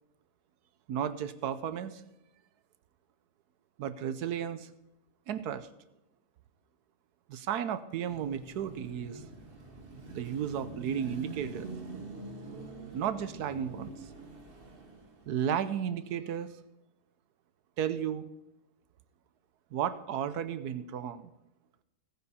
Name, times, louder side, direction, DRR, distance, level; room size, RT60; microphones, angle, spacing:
voice 1, 0.9-2.0 3.8-4.7 5.3-5.7 7.3-9.2 10.1-11.7 12.9-13.9 15.3-16.5 17.8-18.3 19.7-21.3, right 8 dB, 70° right, 13 dB, 1.2 m, -33 dB
Car passing by / Traffic noise roadway noise / Engine, 8.1-15.4, right 3 dB, 35° right, 1.7 m, -45 dB
16.0 x 9.4 x 4.2 m, 0.91 s
omnidirectional pair, 1.8 m